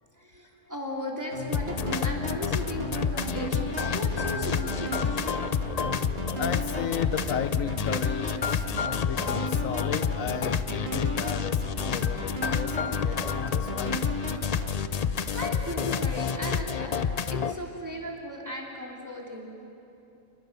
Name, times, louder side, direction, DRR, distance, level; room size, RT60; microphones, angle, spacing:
voice 1, 0.0-5.3 15.3-17.0 17.3-19.7, left 1 dB, 10° right, -2 dB, 3.4 m, -37 dB
sound 1, 1.3-14.8, right 1 dB, 45° right, 2.4 m, -37 dB
sound 2, 1.5-17.5, left 6 dB, 50° left, 0.4 m, -29 dB
voice 2, 6.4-8.7 9.1-14.0, left 8 dB, 70° left, 10 dB, 1.1 m, -35 dB
29.0 x 21.0 x 6.8 m, 2.8 s
omnidirectional pair, 1.5 m